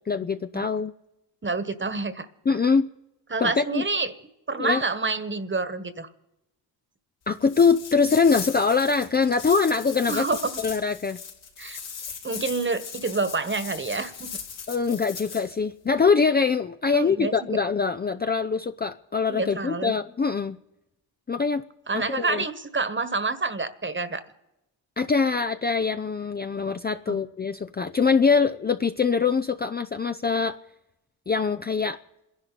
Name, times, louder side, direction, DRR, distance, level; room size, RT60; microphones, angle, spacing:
voice 1, 0.1-0.9 2.5-2.9 3.4-3.9 4.6-4.8 7.3-10.3 10.6-11.2 14.7-20.6 21.3-21.6 21.9-22.4 25.0-30.6 31.3-32.0, left 5 dB, 20° left, 8 dB, 0.6 m, -23 dB
voice 2, 1.4-2.3 3.3-4.1 4.5-6.1 10.1-10.5 11.6-11.8 12.2-14.1 16.9-17.6 19.3-20.0 21.9-24.2 27.1-27.2, right 3 dB, 25° right, 12 dB, 1.5 m, -28 dB
sound 1, 7.4-15.5, left 6 dB, 85° left, 3.7 m, -38 dB
27.5 x 11.0 x 4.2 m, 0.94 s
supercardioid pair, 50°, 45 cm